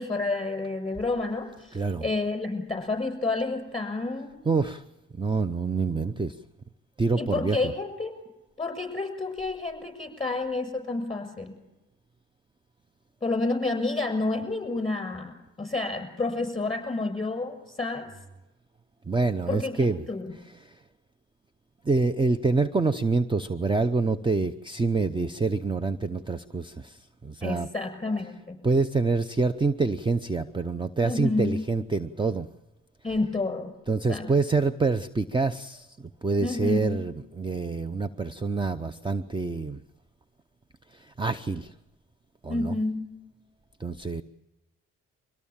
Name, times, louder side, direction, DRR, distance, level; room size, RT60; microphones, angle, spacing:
voice 1, 0.0-4.3 7.2-8.1 8.6-11.5 13.2-18.1 19.5-19.7 20.1-20.3 27.4-28.6 31.0-31.6 33.0-33.7 34.1-34.3 36.4-37.0 42.5-43.0, left 3 dB, 15° left, 8 dB, 6.6 m, -29 dB
voice 2, 1.7-2.1 4.5-4.8 5.1-6.4 7.0-7.7 19.1-20.0 20.6-20.8 21.8-27.7 28.6-32.5 33.9-39.8 40.9-41.7 42.4-42.7 43.8-44.2, right 3 dB, 15° right, 13 dB, 0.8 m, -26 dB
24.5 x 17.5 x 7.3 m, 0.98 s
cardioid pair, 90°, 30 cm